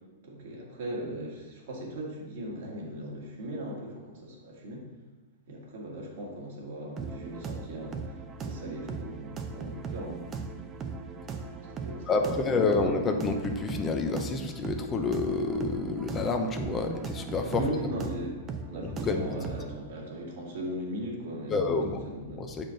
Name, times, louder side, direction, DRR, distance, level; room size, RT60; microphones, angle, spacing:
voice 1, 0.2-4.8 5.5-10.3 11.6-12.3 17.5-18.4 18.7-21.5 22.0-22.4, right 1 dB, 65° right, -2 dB, 1.8 m, -38 dB
sound 1, 7.0-19.8, right 5 dB, 30° right, 0.7 m, -38 dB
voice 2, 12.1-17.9 18.8-19.6 21.5-22.1 22.4-22.7, left 3 dB, 25° left, 4 dB, 0.7 m, -29 dB
7.4 x 4.5 x 3.8 m, 1.2 s
hypercardioid pair, 110°, 0 cm